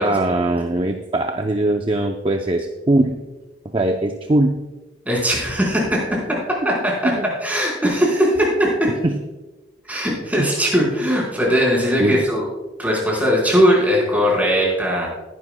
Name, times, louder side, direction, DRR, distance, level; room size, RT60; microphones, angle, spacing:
voice 1, 0.0-3.1 3.7-4.5 7.0-7.3 9.0-9.2 10.4-10.5 12.0-12.2, right 2 dB, 30° right, 4 dB, 0.6 m, -20 dB
voice 2, 5.0-6.4 6.6-7.1 7.4-8.9 9.9-12.4 12.8-15.1, equal, 10° right, -4 dB, 4.3 m, -19 dB
20.5 x 11.0 x 2.2 m, 1.2 s
head